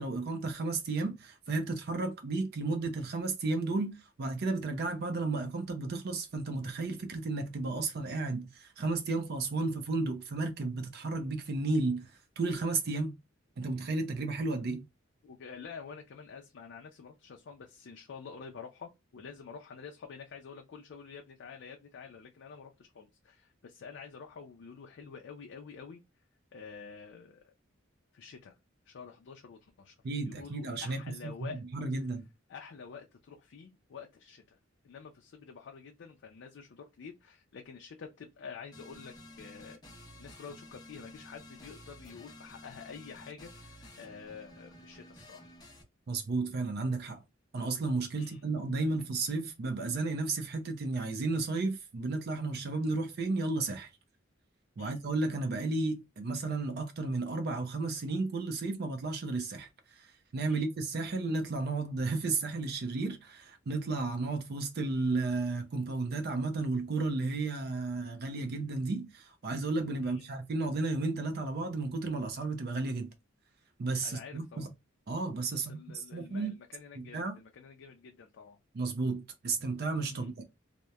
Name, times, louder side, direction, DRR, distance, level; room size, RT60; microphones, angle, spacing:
voice 1, 0.0-13.1 13.6-14.8 30.0-31.3 31.7-32.3 46.1-47.2 47.5-53.9 54.8-73.1 73.8-74.7 75.1-76.5 77.0-77.4 78.7-80.4, right 3 dB, 55° right, 0.5 m, -33 dB
voice 2, 15.2-26.0 26.5-27.5 28.1-28.6 28.9-30.0 30.2-31.6 32.5-34.6 34.8-39.8 40.2-45.5 48.2-48.4 54.8-55.0 60.5-60.6 70.0-70.4 74.0-74.7 75.5-78.6 80.1-80.3, left 5 dB, 65° left, 0.4 m, -48 dB
sound 1, 38.7-45.8, left 1 dB, 20° left, 0.7 m, -52 dB
2.8 x 2.0 x 2.2 m
head